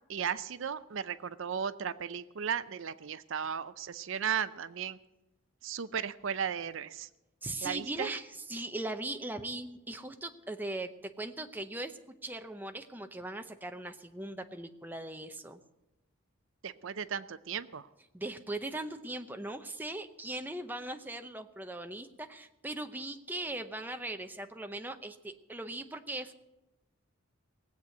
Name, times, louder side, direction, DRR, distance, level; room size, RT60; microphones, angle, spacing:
voice 1, 0.1-5.0 5.6-7.1 7.6-8.1 16.6-17.9, right 7 dB, 65° right, 14 dB, 0.5 m, -35 dB
voice 2, 7.4-15.6 18.1-26.3, right 2 dB, 10° right, 6 dB, 0.7 m, -39 dB
19.0 x 8.2 x 7.7 m, 1.0 s
head